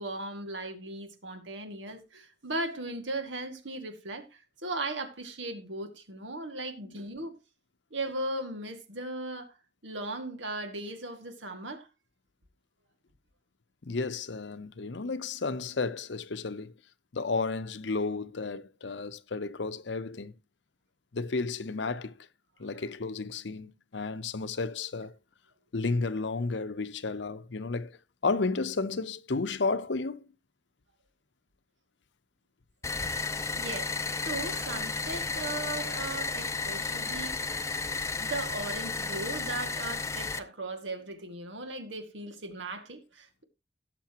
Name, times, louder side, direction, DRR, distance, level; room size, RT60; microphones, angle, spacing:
voice 1, 0.0-7.4 7.9-9.6 9.8-11.9 33.4-33.9 34.2-37.5 38.2-43.4, right 2 dB, 80° right, 2.1 m, -37 dB
voice 2, 13.8-16.8 17.1-20.3 21.1-22.3 22.6-25.1 25.7-30.2, left 3 dB, 70° left, 0.8 m, -32 dB
sound 1, 32.8-40.4, left 4 dB, 15° left, 0.6 m, -33 dB
17.5 x 7.0 x 2.9 m
head